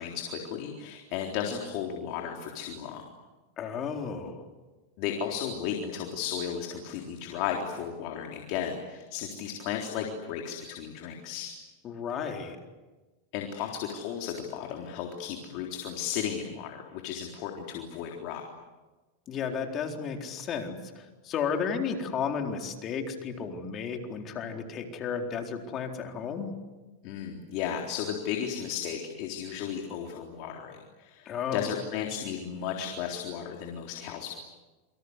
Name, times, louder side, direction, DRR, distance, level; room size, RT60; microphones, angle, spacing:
voice 1, 0.0-3.0 5.0-11.5 13.3-18.4 27.0-34.3, left 8 dB, 55° left, 2 dB, 3.8 m, -34 dB
voice 2, 3.6-4.4 11.8-12.6 19.3-26.5 31.3-31.7, left 6 dB, 35° left, 3 dB, 4.1 m, -33 dB
27.5 x 25.5 x 8.2 m, 1.2 s
supercardioid pair, 135°, 0 cm